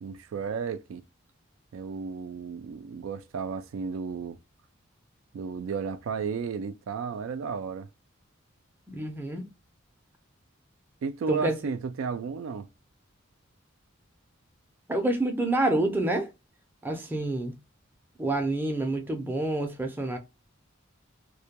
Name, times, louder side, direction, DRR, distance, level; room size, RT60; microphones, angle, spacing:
voice 1, 0.0-1.0 1.7-4.4 5.3-7.9 11.0-12.7, right 5 dB, 75° right, 0.3 m, -33 dB
voice 2, 8.9-9.5 11.3-11.6 14.9-16.3 16.8-17.5 18.2-20.2, right 2 dB, 10° right, 0.4 m, -28 dB
2.1 x 2.1 x 2.8 m
head